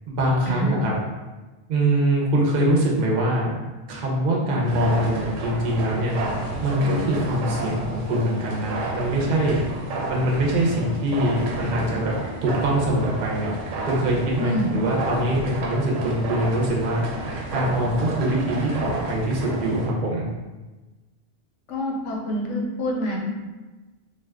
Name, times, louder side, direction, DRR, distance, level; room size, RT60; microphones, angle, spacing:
voice 1, 0.1-0.9 1.7-3.6 3.9-6.2 6.6-9.6 10.1-12.1 12.4-13.5 13.9-17.1 17.5-20.2, right 1 dB, 55° right, -3 dB, 0.7 m, -23 dB
sound 1, 4.6-19.9, right 2 dB, 90° right, 0.9 m, -31 dB
voice 2, 14.4-14.7 21.7-23.2, equal, 85° left, -1 dB, 1.0 m, -27 dB
2.4 x 2.3 x 3.4 m, 1.2 s
omnidirectional pair, 1.2 m